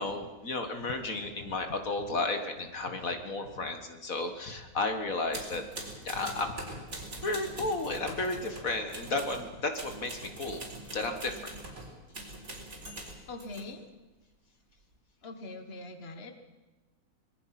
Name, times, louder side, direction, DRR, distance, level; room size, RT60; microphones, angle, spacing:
voice 1, 0.0-5.6 6.0-6.6 7.2-10.7 10.9-11.5, left 2 dB, 65° left, 6 dB, 2.0 m, -33 dB
sound 1, 5.3-9.5 9.7-13.7, right 2 dB, 65° right, 4.7 m, -43 dB
voice 2, 13.3-13.8 15.2-16.3, left 2 dB, 40° left, 7 dB, 1.8 m, -42 dB
25.5 x 21.0 x 6.0 m, 1.2 s
omnidirectional pair, 1.6 m